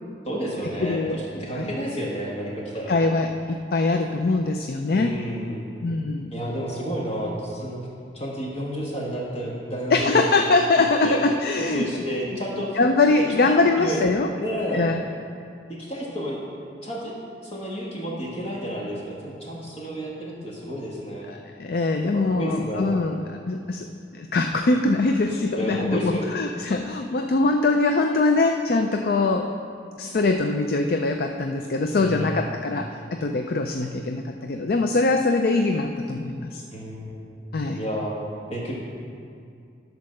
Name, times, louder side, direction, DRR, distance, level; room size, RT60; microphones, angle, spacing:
voice 1, 0.2-3.0 4.9-5.6 6.3-7.8 8.1-10.2 11.0-11.2 11.6-12.8 13.1-13.2 13.4-14.0 14.4-14.9 15.7-16.4 16.8-17.1 17.4-21.3 22.1-23.0 25.5-26.3 31.9-32.4 36.7-37.2 37.8-38.1 38.5-38.7, equal, 30° left, -5 dB, 1.5 m, -31 dB
voice 2, 0.8-1.2 1.6-1.7 2.9-5.2 5.8-6.3 9.9-12.0 12.7-14.3 14.7-15.0 21.3-23.2 23.5-29.5 30.0-36.6 37.5-37.8, left 3 dB, 55° left, 5 dB, 0.4 m, -23 dB
11.5 x 4.6 x 6.4 m, 2.4 s
head